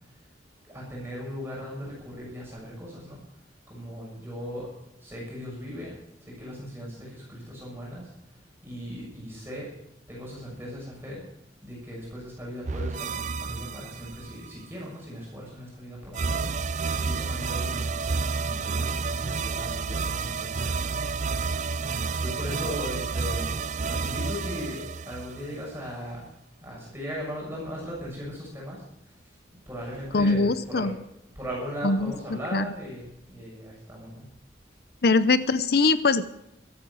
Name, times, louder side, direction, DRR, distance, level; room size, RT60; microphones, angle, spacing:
voice 1, 0.6-3.2 3.7-4.7 5.0-5.9 6.2-8.1 8.6-9.7 10.1-11.2 11.6-16.5 17.0-21.5 22.2-23.5 23.9-26.2 26.6-29.2 29.7-30.9 31.3-34.3, equal, 15° right, -4 dB, 6.6 m, -38 dB
sound 1, 12.6-14.5 16.1-25.9, right 4 dB, 40° right, 0.5 m, -30 dB
voice 2, 30.1-31.0 31.8-32.1 32.5-32.7 35.0-36.2, left 3 dB, 60° left, 14 dB, 0.7 m, -22 dB
13.5 x 13.0 x 6.3 m, 0.80 s
head